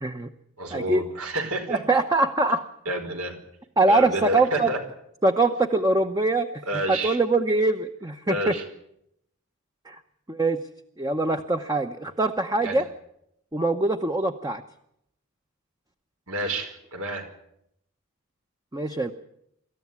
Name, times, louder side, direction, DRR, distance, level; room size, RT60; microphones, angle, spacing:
voice 1, 0.0-0.3 0.7-1.0 1.7-2.6 3.8-4.7 5.2-8.5 9.9-10.0 10.3-10.6 11.0-12.9 13.5-14.6 18.7-19.1, right 2 dB, 15° right, 6 dB, 0.8 m, -23 dB
voice 2, 0.6-1.8 2.8-3.3 3.9-4.8 6.7-7.2 8.3-8.6 12.6-12.8 16.3-17.3, right 1 dB, 85° right, 5 dB, 4.9 m, -29 dB
26.0 x 14.0 x 9.5 m, 0.78 s
head